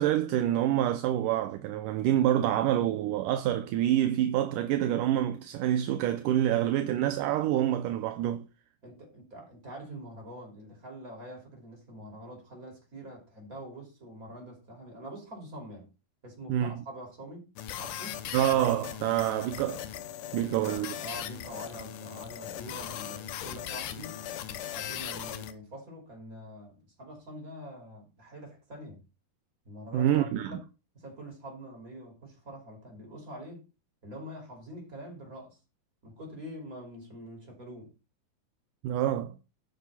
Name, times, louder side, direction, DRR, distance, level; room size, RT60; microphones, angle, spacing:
voice 1, 0.0-8.5 16.5-16.8 18.3-19.8 20.3-20.9 29.9-30.6 38.8-39.3, right 12 dB, 75° right, 2.2 m, -27 dB
voice 2, 8.8-15.9 16.2-17.4 17.8-18.3 20.5-24.2 24.7-29.0 29.7-30.6 30.9-33.6 34.0-35.6 36.0-37.9, equal, 20° right, 5.6 m, -45 dB
sound 1, 17.6-25.5, left 11 dB, 75° left, 2.5 m, -39 dB
12.0 x 9.3 x 4.2 m
omnidirectional pair, 4.0 m